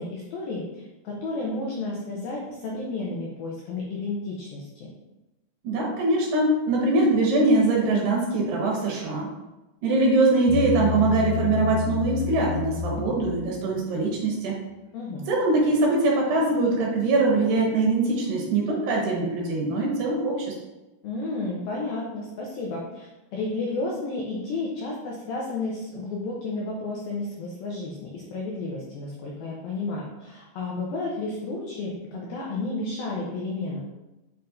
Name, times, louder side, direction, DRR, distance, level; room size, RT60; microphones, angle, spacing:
voice 1, 0.0-4.9 14.9-15.2 21.0-33.8, left 2 dB, 85° left, -3 dB, 2.1 m, -32 dB
voice 2, 5.6-9.3 9.8-14.6 15.3-20.5, right 2 dB, 70° right, -2 dB, 3.2 m, -22 dB
Bass guitar, 10.5-13.9, left 7 dB, 50° left, 2.9 m, -30 dB
8.0 x 5.6 x 2.6 m, 1.0 s
omnidirectional pair, 5.5 m